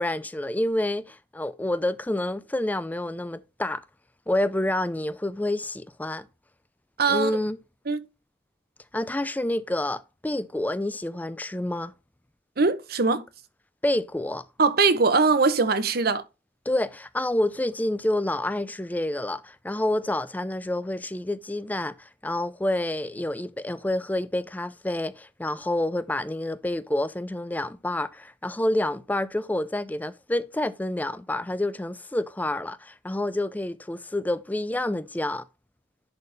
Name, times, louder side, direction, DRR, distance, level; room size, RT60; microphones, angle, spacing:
voice 1, 0.0-3.8 4.3-6.3 7.1-7.6 8.9-11.9 13.8-14.4 16.7-35.5, left 1 dB, 10° left, 0.4 m, -28 dB
voice 2, 7.0-7.3 7.9-8.0 12.6-13.2 14.6-16.2, right 4 dB, 55° right, 0.9 m, -21 dB
10.5 x 4.2 x 3.4 m
head